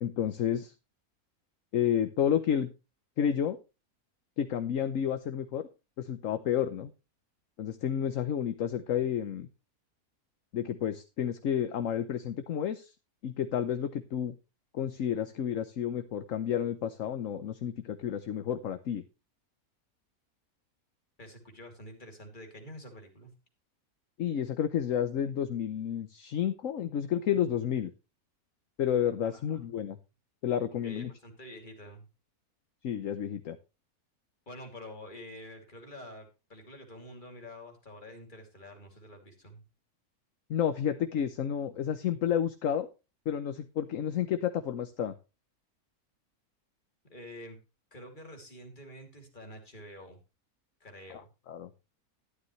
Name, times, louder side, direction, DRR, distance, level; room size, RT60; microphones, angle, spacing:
voice 1, 0.0-0.7 1.7-2.7 3.2-3.6 4.4-5.6 6.0-6.9 7.6-9.5 10.5-12.9 13.2-14.3 14.7-19.0 24.2-27.9 28.8-30.0 30.4-31.1 32.8-33.6 40.5-42.9 43.3-45.1 51.1-51.7, left 9 dB, 65° left, 9 dB, 1.2 m, -30 dB
voice 2, 21.2-23.3 29.2-29.7 30.8-32.1 34.5-39.6 47.1-47.6 47.9-50.2 50.8-51.3, left 1 dB, 30° left, 3 dB, 3.0 m, -48 dB
12.5 x 11.5 x 3.2 m, 0.29 s
omnidirectional pair, 1.6 m